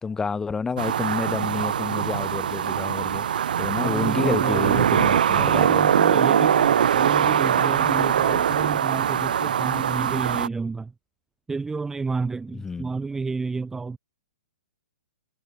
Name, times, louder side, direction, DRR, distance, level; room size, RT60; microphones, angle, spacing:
voice 1, 0.0-3.3 3.6-5.9 12.5-12.9, left 5 dB, 10° left, 3.4 m, -29 dB
sound 1, 0.8-10.5, right 9 dB, 65° right, 0.9 m, -22 dB
voice 2, 3.8-5.1 5.3-10.9 11.5-14.0, right 4 dB, 10° right, 1.7 m, -30 dB
hypercardioid pair, 120°, 5 cm